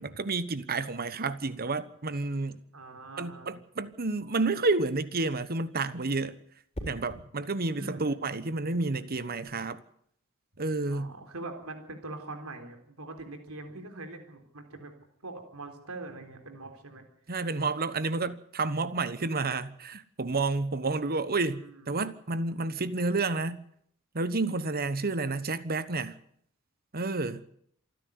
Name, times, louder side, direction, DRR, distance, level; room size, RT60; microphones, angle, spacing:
voice 1, 0.0-2.6 3.2-6.4 6.9-9.8 10.6-11.1 17.3-23.6 24.1-26.1 26.9-27.4, right 3 dB, 45° right, 1.2 m, -30 dB
voice 2, 2.7-3.6 7.7-8.5 10.8-14.9 15.2-17.1 21.1-21.2 21.5-22.0, right 2 dB, 80° right, 3.7 m, -43 dB
sound 1, 3.9-4.3 6.7-7.3 9.3-9.5, equal, 30° left, 4.0 m, -41 dB
27.0 x 10.5 x 9.6 m
head